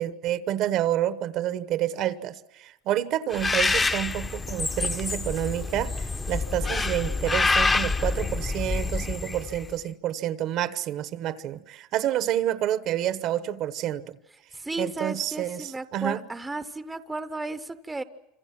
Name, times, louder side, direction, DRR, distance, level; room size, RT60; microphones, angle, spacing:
voice 1, 0.0-14.2 14.8-16.2, right 12 dB, 45° right, 1.0 m, -29 dB
Bird, 3.3-9.7, left 3 dB, 15° left, 0.9 m, -27 dB
voice 2, 6.6-6.9 14.5-18.0, right 2 dB, 10° right, 0.8 m, -34 dB
27.0 x 26.5 x 6.0 m
cardioid pair, 150°, 0 cm